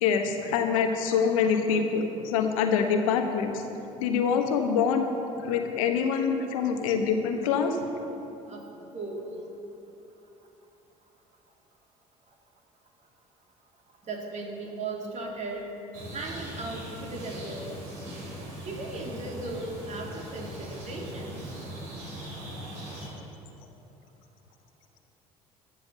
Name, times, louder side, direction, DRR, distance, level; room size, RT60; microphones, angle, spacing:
voice 1, 0.0-3.6 4.0-5.1 5.4-7.8, left 6 dB, 70° left, 5 dB, 1.0 m, -25 dB
voice 2, 8.9-9.3 14.0-15.7 16.1-17.8 18.6-21.5, right 2 dB, 40° right, 0 dB, 2.4 m, -37 dB
sound 1, 15.9-23.1, right 1 dB, 65° right, 3.3 m, -40 dB
13.0 x 7.7 x 6.7 m, 2.9 s
figure-of-eight pair, 55°, 18 cm